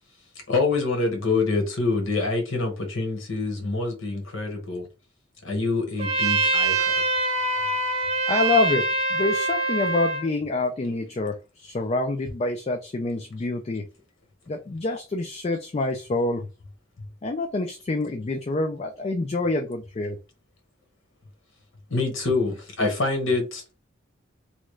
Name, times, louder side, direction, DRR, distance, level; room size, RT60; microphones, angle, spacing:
voice 1, 0.5-4.9 5.4-6.9 21.9-23.6, left 3 dB, 85° left, 1.1 m, -26 dB
Trumpet, 6.0-10.3, right 3 dB, 30° right, 0.7 m, -24 dB
voice 2, 8.3-13.9 14.5-16.5 17.2-20.2, left 2 dB, 30° left, 0.3 m, -26 dB
3.0 x 2.3 x 3.1 m
head